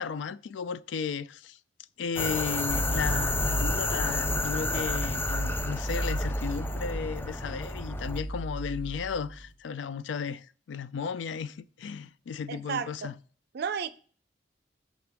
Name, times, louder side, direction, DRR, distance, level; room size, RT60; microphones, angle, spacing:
voice 1, 0.0-1.6 2.0-13.1, left 6 dB, 85° left, 0.4 m, -35 dB
sound 1, 2.2-8.2, left 3 dB, 10° left, 0.3 m, -32 dB
sound 2, 2.7-9.5, right 1 dB, 40° left, 2.0 m, -33 dB
voice 2, 12.5-13.1 13.5-13.9, right 6 dB, 60° right, 0.4 m, -32 dB
6.2 x 5.9 x 3.4 m
head